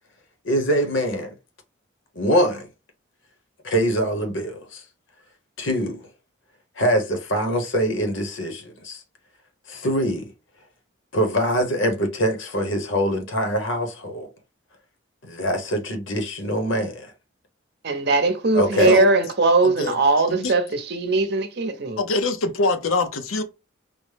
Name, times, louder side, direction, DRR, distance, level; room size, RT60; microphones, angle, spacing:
voice 1, 0.4-1.3 2.2-2.7 3.6-4.8 5.6-6.0 6.8-9.0 9.7-10.3 11.1-14.3 15.2-17.1 18.5-19.0, equal, 70° left, 1.0 m, -23 dB
voice 2, 17.8-22.0, right 3 dB, 55° right, 0.7 m, -20 dB
voice 3, 18.8-19.1 19.6-20.0 20.3-20.5 22.0-23.4, left 3 dB, 90° left, 0.7 m, -24 dB
5.1 x 2.0 x 3.3 m
head